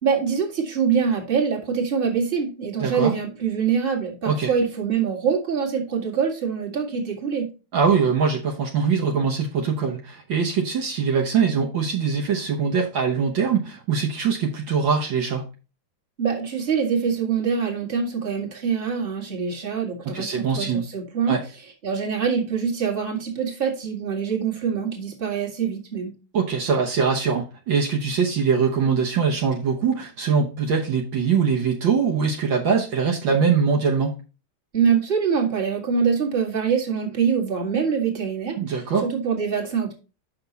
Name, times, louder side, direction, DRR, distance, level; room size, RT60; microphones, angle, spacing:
voice 1, 0.0-7.5 16.2-21.4 21.8-26.1 34.7-39.9, right 6 dB, 25° right, -1 dB, 2.0 m, -24 dB
voice 2, 2.8-3.1 4.2-4.5 7.7-15.4 20.1-20.8 21.3-21.4 26.3-34.1 38.6-39.1, right 6 dB, 65° right, 0 dB, 1.7 m, -22 dB
7.1 x 6.0 x 4.0 m, 0.32 s
omnidirectional pair, 2.3 m